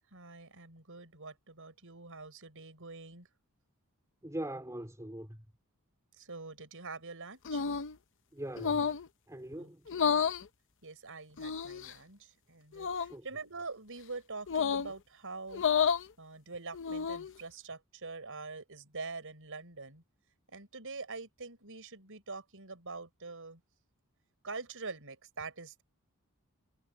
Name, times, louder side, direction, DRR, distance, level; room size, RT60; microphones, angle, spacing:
voice 1, 0.1-3.3 6.2-7.6 9.6-10.2 10.8-15.6 16.2-20.0 20.5-23.6 24.4-25.8, right 3 dB, 65° right, 6.6 m, -45 dB
voice 2, 4.2-5.4 8.3-8.9 9.3-9.8 13.1-13.2, right 1 dB, 15° right, 3.7 m, -41 dB
sound 1, 7.5-7.9 8.6-9.1 9.9-10.4 11.4-11.9 12.7-13.1 14.5-14.9 15.5-16.1 16.7-17.3, left 6 dB, 55° left, 0.7 m, -30 dB
head